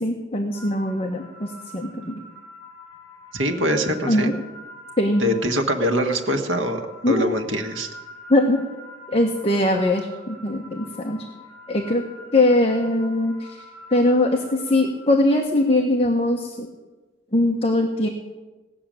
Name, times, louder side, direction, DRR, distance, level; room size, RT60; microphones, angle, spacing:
voice 1, 0.0-2.2 4.1-4.3 5.0-5.2 7.0-7.3 8.3-8.6 9.1-11.2 11.7-12.0 12.3-13.6 13.9-16.7 17.3-18.1, left 1 dB, 30° left, 1 dB, 1.2 m, -21 dB
sound 1, 0.5-15.7, equal, 50° left, 4.1 m, -44 dB
voice 2, 3.3-4.3 5.2-7.9, equal, 90° right, 5 dB, 1.6 m, -23 dB
18.0 x 6.8 x 8.9 m, 1.2 s
head